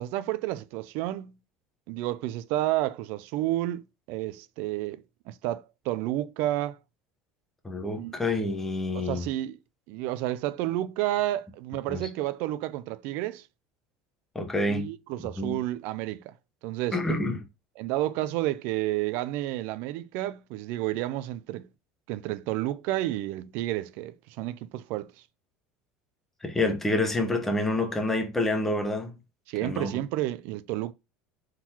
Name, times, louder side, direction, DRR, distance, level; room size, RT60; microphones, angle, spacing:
voice 1, 0.0-1.3 1.9-3.8 4.1-6.8 8.0-8.1 8.9-9.6 9.9-13.4 14.7-16.3 16.6-17.0 17.8-21.7 22.1-25.1 29.5-30.9, right 15 dB, 60° right, 0.4 m, -30 dB
voice 2, 7.6-9.2 11.9-12.0 14.3-14.9 15.4-15.6 16.9-17.4 26.4-29.1 29.6-29.9, left 2 dB, 10° left, 0.8 m, -27 dB
4.4 x 3.8 x 2.8 m
cardioid pair, 160°, 4 cm